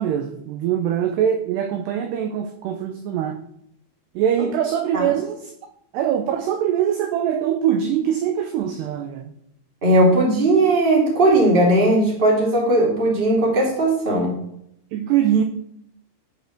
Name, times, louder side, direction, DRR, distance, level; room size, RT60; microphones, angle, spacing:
voice 1, 0.0-3.4 4.2-5.5 5.9-9.3 12.7-12.8 14.9-15.4, right 9 dB, 80° right, 6 dB, 2.4 m, -23 dB
voice 2, 9.8-14.3, right 1 dB, 15° right, -2 dB, 2.3 m, -17 dB
14.0 x 5.3 x 6.1 m, 0.73 s
omnidirectional pair, 6.0 m